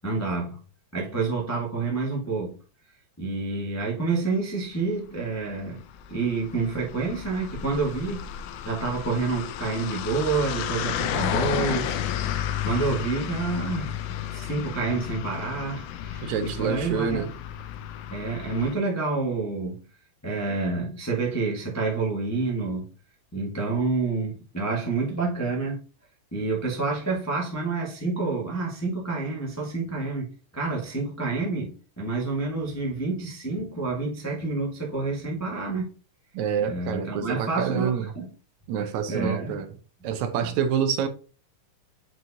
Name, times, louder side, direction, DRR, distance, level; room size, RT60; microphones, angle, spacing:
voice 1, 0.0-0.6 0.9-2.6 3.2-5.8 6.1-8.3 8.6-12.0 12.6-14.0 14.3-17.3 18.1-19.8 20.2-22.9 23.3-25.8 26.3-35.8 36.6-38.3 38.8-39.6 40.4-40.5, right 3 dB, 25° left, 0.3 m, -28 dB
sound 1, 5.5-18.7, left 10 dB, 80° left, 1.4 m, -32 dB
voice 2, 16.2-17.3 36.3-38.0 38.7-39.7 40.0-41.1, right 7 dB, 80° right, 2.0 m, -27 dB
7.7 x 4.6 x 2.7 m
omnidirectional pair, 3.3 m